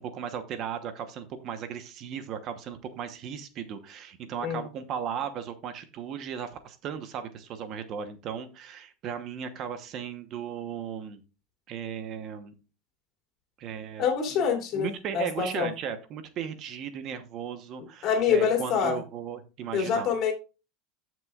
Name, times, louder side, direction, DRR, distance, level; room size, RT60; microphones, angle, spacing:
voice 1, 0.0-11.2 11.7-12.5 13.6-14.0 14.3-14.5 14.7-20.1, right 8 dB, 40° right, 9 dB, 1.0 m, -36 dB
voice 2, 14.0-15.7 18.0-19.0 19.7-20.3, left 7 dB, 40° left, 3 dB, 3.0 m, -26 dB
14.0 x 6.2 x 2.4 m, 0.31 s
supercardioid pair, 155°, 0 cm